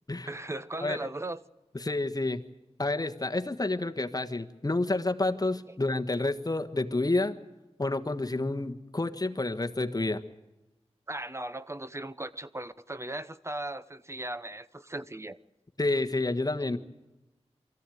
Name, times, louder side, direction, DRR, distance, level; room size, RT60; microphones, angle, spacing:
voice 1, 0.3-1.4 11.1-15.4, right 1 dB, 25° right, 0.9 m, -37 dB
voice 2, 1.7-2.4 2.8-7.4 7.8-10.2 15.8-16.8, left 2 dB, 35° left, 1.4 m, -29 dB
23.5 x 14.5 x 9.3 m
wide cardioid pair, 55°, 11 cm